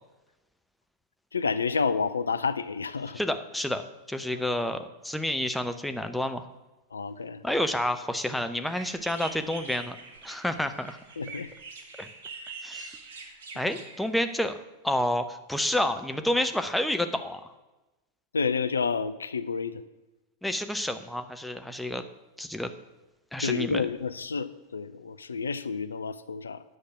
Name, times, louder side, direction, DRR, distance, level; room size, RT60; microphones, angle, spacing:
voice 1, 1.3-3.2 6.9-7.4 11.2-11.5 18.3-19.8 23.4-26.6, left 5 dB, 75° left, 13 dB, 0.4 m, -29 dB
voice 2, 3.1-3.8 4.1-6.4 7.4-10.0 10.2-11.0 12.0-12.1 12.6-13.0 13.6-17.5 20.4-22.0 22.4-22.7 23.3-23.9, left 1 dB, ahead, 7 dB, 0.7 m, -29 dB
sound 1, 8.6-14.5, right 3 dB, 60° right, 1.3 m, -44 dB
9.5 x 6.4 x 6.0 m, 1.1 s
figure-of-eight pair, 90°, 0 cm